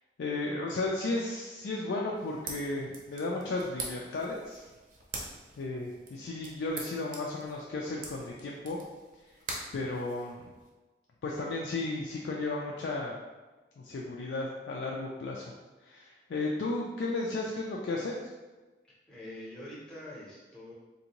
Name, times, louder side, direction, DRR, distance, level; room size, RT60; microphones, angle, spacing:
voice 1, 0.2-4.6 5.6-8.8 9.7-10.5 11.2-13.2 13.8-15.5 15.8-18.2, left 2 dB, 85° left, -2 dB, 0.4 m, -34 dB
sound 1, 2.1-10.7, right 3 dB, 50° right, 0.6 m, -45 dB
voice 2, 19.1-20.7, left 1 dB, 5° left, -7 dB, 0.6 m, -45 dB
3.5 x 2.6 x 2.9 m, 1.2 s
head